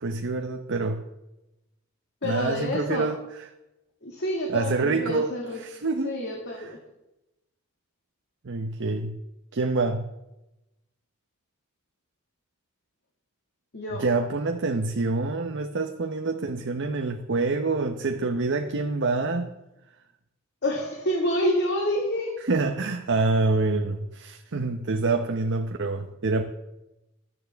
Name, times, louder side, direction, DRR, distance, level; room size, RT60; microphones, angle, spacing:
voice 1, 0.0-1.0 2.2-3.2 4.5-6.2 6.6-6.7 8.4-9.2 9.5-10.0 13.9-19.5 22.5-26.4, right 3 dB, 60° right, 5 dB, 0.8 m, -26 dB
voice 2, 2.2-3.1 4.0-5.6 6.0-6.8 13.7-14.0 20.6-22.4, left 1 dB, 55° left, 0 dB, 2.0 m, -28 dB
16.0 x 12.0 x 3.5 m, 0.94 s
head